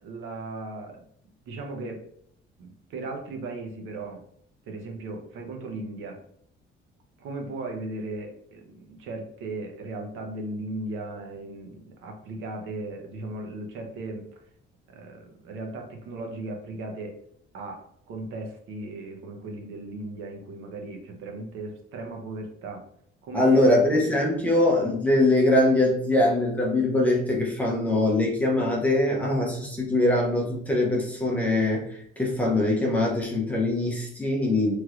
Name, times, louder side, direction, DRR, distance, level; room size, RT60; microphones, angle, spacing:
voice 1, 0.0-1.0 1.5-2.0 2.6-4.2 4.7-6.2 7.2-14.2 14.9-17.2 17.5-22.8 23.2-23.9, right 2 dB, 90° right, 2 dB, 0.8 m, -37 dB
voice 2, 23.3-34.7, left 1 dB, 5° left, -3 dB, 0.6 m, -22 dB
3.1 x 3.0 x 2.4 m, 0.66 s
cardioid pair, 175°, 20 cm